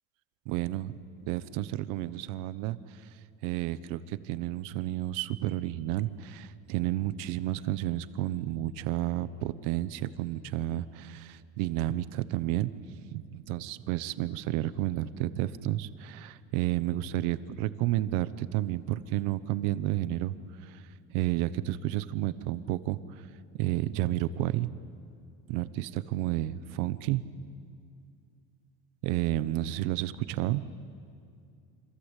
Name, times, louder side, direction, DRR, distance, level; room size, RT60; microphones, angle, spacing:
voice 1, 0.5-0.9 1.3-2.8 3.4-12.7 13.1-20.3 20.6-20.8 21.1-23.0 23.6-24.7 25.5-27.2 29.0-30.6, right 15 dB, 80° right, 14 dB, 1.1 m, -31 dB
27.5 x 26.5 x 8.3 m, 2.4 s
cardioid pair, 175°, 31 cm